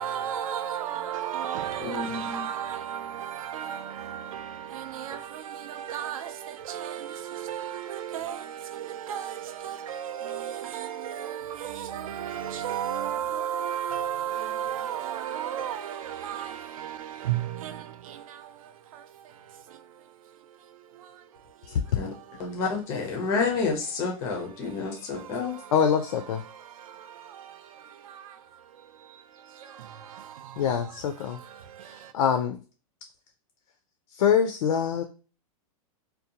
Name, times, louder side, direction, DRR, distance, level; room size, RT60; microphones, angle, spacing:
voice 1, 0.0-18.5 18.9-19.0 27.0-27.4 28.1-28.3 29.8-30.6 32.0-32.1, right 10 dB, 75° right, 0.4 m, -34 dB
voice 2, 1.8-2.5 21.9-22.1 22.4-25.6, left 4 dB, 15° left, 0.4 m, -29 dB
voice 3, 25.7-26.4 30.6-31.4 32.1-32.6 34.2-35.0, left 7 dB, 80° left, 0.4 m, -24 dB
2.6 x 2.1 x 2.7 m
supercardioid pair, 175°, 18 cm